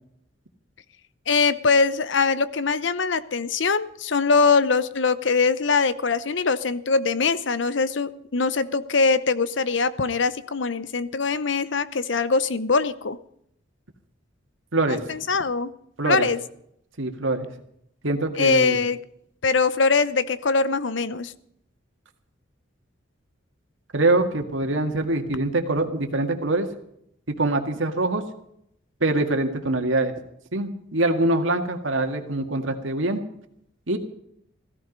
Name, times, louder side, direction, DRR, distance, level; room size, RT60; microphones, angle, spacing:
voice 1, 1.3-13.2 14.9-15.7 16.1-16.4 18.4-19.0 19.4-21.3, left 4 dB, 65° left, 15 dB, 0.8 m, -22 dB
voice 2, 14.7-15.1 16.0-16.3 17.0-17.5 18.0-18.8 23.9-26.7 27.3-28.2 29.0-30.1 30.5-33.2 33.9-34.0, right 2 dB, 70° right, 5 dB, 1.9 m, -24 dB
16.0 x 14.0 x 5.3 m, 0.73 s
head